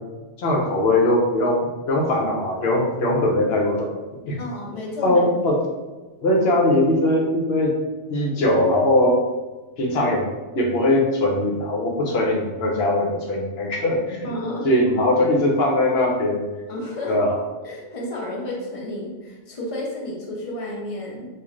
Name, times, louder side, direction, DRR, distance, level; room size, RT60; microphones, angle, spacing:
voice 1, 0.4-3.9 4.3-4.4 5.0-5.6 6.2-7.7 8.1-9.2 9.8-10.2 10.5-14.3 14.6-16.4 17.1-17.4, left 1 dB, 60° left, 0 dB, 0.9 m, -20 dB
voice 2, 4.4-5.2 14.2-14.7 16.7-17.2 17.6-21.3, left 1 dB, 35° left, -2 dB, 0.7 m, -31 dB
3.1 x 2.5 x 3.6 m, 1.2 s
omnidirectional pair, 1.2 m